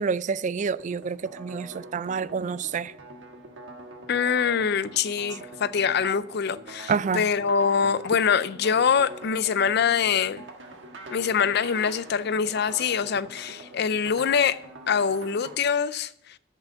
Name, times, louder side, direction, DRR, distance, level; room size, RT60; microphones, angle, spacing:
voice 1, 0.0-2.9 6.9-7.2, right 5 dB, 40° right, 0.3 m, -28 dB
sound 1, 0.8-15.5, right 2 dB, 70° right, 1.4 m, -44 dB
voice 2, 4.1-10.4 11.1-14.6 14.9-16.1, left 6 dB, 60° left, 0.5 m, -24 dB
8.1 x 6.9 x 7.0 m
head